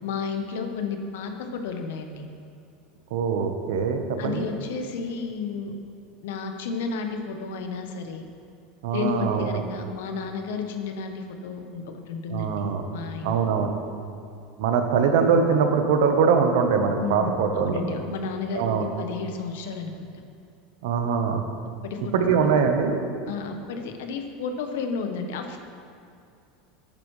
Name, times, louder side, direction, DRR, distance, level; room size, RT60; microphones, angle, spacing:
voice 1, 0.0-2.3 4.2-5.7 6.2-8.2 8.9-12.6 12.9-13.3 17.0-20.1 21.8-22.1 22.4-22.5 23.3-25.6, left 5 dB, 85° left, 5 dB, 1.0 m, -32 dB
voice 2, 3.1-4.4 8.8-9.5 12.3-12.8 13.2-13.7 14.6-17.8 18.5-18.9 20.8-21.5 22.1-23.0, right 6 dB, 75° right, 5 dB, 1.0 m, -22 dB
10.5 x 9.0 x 3.2 m, 2.5 s
supercardioid pair, 155°, 0 cm